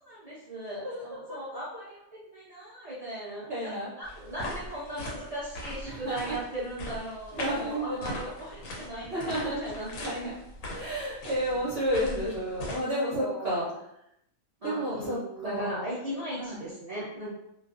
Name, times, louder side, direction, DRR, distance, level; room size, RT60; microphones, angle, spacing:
voice 1, 0.0-10.0 11.5-11.6 13.2-13.7 14.6-17.3, right 1 dB, 80° right, -8 dB, 0.3 m, -38 dB
voice 2, 3.5-3.9 5.8-6.3 7.3-8.0 9.1-9.6 10.0-10.4 10.7-13.7 14.6-15.2 15.4-15.9 16.4-16.6, equal, 60° right, -6 dB, 0.7 m, -31 dB
sound 1, 4.0-12.8, left 1 dB, 80° left, 1.1 m, -40 dB
2.4 x 2.3 x 2.3 m, 0.80 s
omnidirectional pair, 1.4 m